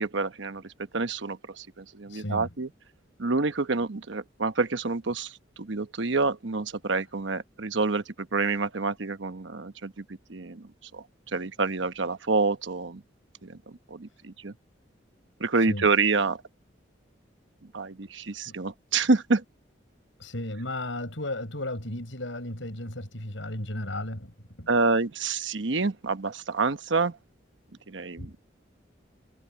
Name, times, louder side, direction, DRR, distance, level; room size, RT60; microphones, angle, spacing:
voice 1, 0.0-2.7 3.2-10.0 10.3-13.0 13.4-14.5 15.4-16.4 17.7-19.4 24.7-27.2 27.9-28.4, right 3 dB, 80° right, 1.1 m, -28 dB
voice 2, 2.1-2.5 15.6-15.9 18.5-18.6 20.2-24.3 24.6-24.7 28.2-28.3, left 1 dB, 85° left, 7.5 m, -34 dB
head